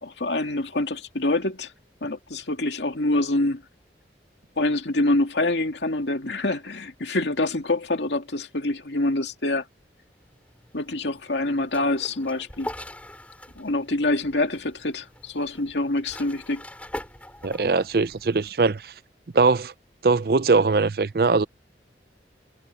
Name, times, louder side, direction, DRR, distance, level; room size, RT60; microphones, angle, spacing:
voice 1, 0.0-1.7 2.0-3.6 4.6-9.6 10.7-12.7 13.6-16.6 17.6-17.7, left 2 dB, 80° left, 2.3 m, -26 dB
sound 1, 10.2-18.5, left 1 dB, 10° left, 4.5 m, -42 dB
voice 2, 17.4-18.9 19.3-19.7 20.0-21.5, right 4 dB, 55° right, 0.5 m, -21 dB
head